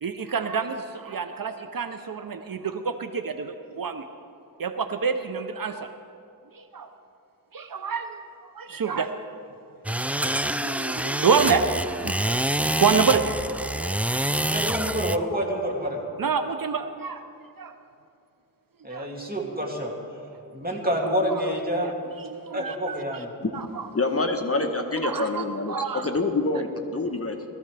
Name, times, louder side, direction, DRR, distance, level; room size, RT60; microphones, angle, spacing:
voice 1, 0.0-4.1 4.6-5.9 6.5-6.9 7.5-9.1 9.9-10.0 10.2-11.7 12.0-13.3 13.7-14.0 16.2-17.3 17.6-17.7 18.9-19.1 20.7-21.4 21.8-23.2 23.5-23.9 25.0-26.2, right 6 dB, 65° right, 8 dB, 0.6 m, -28 dB
sound 1, 9.8-15.2, right 1 dB, 5° right, 0.3 m, -26 dB
voice 2, 14.5-16.0 18.8-19.9 20.5-21.9 22.5-23.3, equal, 25° right, -2 dB, 2.6 m, -27 dB
voice 3, 23.9-27.4, left 3 dB, 40° left, 5 dB, 1.0 m, -26 dB
20.5 x 14.0 x 3.3 m, 2.6 s
wide cardioid pair, 55°, 37 cm